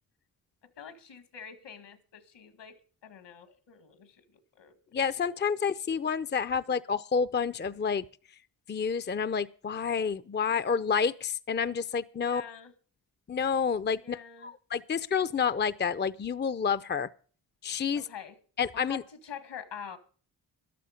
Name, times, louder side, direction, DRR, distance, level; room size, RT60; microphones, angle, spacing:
voice 1, 0.8-4.8 5.1-5.9 6.7-6.8 12.1-12.7 14.0-14.5 18.0-18.4 18.7-20.0, left 7 dB, 70° left, 2.0 m, -46 dB
voice 2, 4.9-8.0 8.7-12.4 13.3-14.2 14.4-17.1 17.6-18.0 18.6-19.0, left 6 dB, 25° left, 0.6 m, -29 dB
13.5 x 12.0 x 5.2 m
cardioid pair, 55°, 43 cm